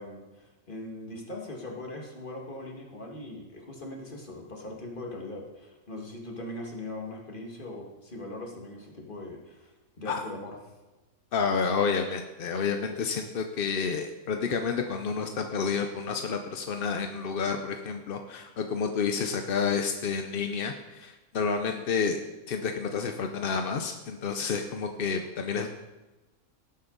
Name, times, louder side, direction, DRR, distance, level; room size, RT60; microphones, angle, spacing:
voice 1, 0.0-10.6, left 2 dB, 35° left, -1 dB, 2.1 m, -40 dB
voice 2, 11.3-22.2 22.5-25.7, left 5 dB, 50° left, 5 dB, 0.7 m, -30 dB
18.0 x 8.0 x 4.0 m, 1.1 s
omnidirectional pair, 1.6 m